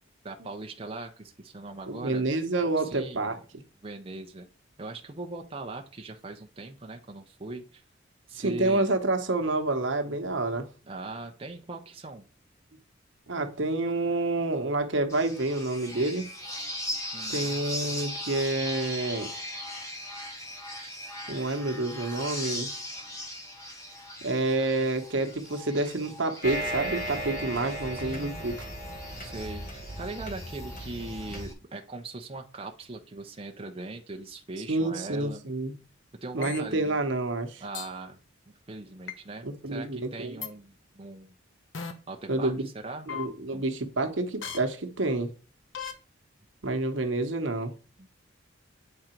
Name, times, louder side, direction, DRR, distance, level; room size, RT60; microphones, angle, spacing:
voice 1, 0.2-2.2 2.8-3.3 3.8-4.5 4.8-7.8 8.3-8.8 10.8-12.3 17.1-17.5 27.9-28.6 29.2-35.4 36.2-37.0 37.6-38.2 38.5-41.3 42.1-42.5 42.8-43.1 43.5-43.6 48.0-48.1, right 2 dB, 30° right, 0.6 m, -40 dB
voice 2, 1.9-3.4 8.3-10.7 13.3-16.3 17.3-19.3 21.3-22.7 24.2-28.7 34.7-35.7 36.3-37.6 39.4-40.4 42.3-42.7 43.1-45.3 46.6-47.7, right 2 dB, 75° right, 1.0 m, -28 dB
sound 1, 15.1-31.5, left 1 dB, 15° left, 1.6 m, -39 dB
sound 2, 26.4-31.5, right 1 dB, 45° left, 1.9 m, -36 dB
sound 3, 36.4-36.6 37.7-37.9 39.1-39.2 40.4-40.5 41.7-41.9 43.1-43.3 44.4-44.6 45.7-45.9, left 7 dB, 80° left, 1.0 m, -36 dB
8.7 x 3.8 x 4.4 m
head